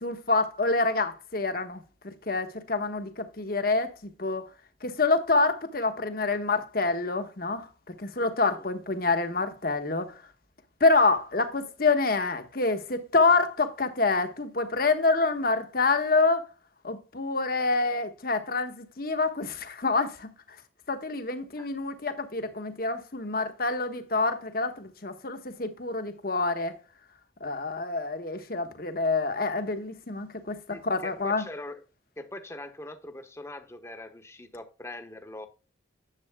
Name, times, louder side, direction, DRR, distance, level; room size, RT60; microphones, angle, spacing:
voice 1, 0.0-4.5 4.8-10.2 10.8-16.5 16.8-20.3 20.9-26.7 27.4-31.4, left 3 dB, 55° left, 1.3 m, -27 dB
voice 2, 30.7-31.8 32.2-35.5, left 1 dB, 15° left, 0.9 m, -42 dB
10.5 x 7.7 x 2.3 m
head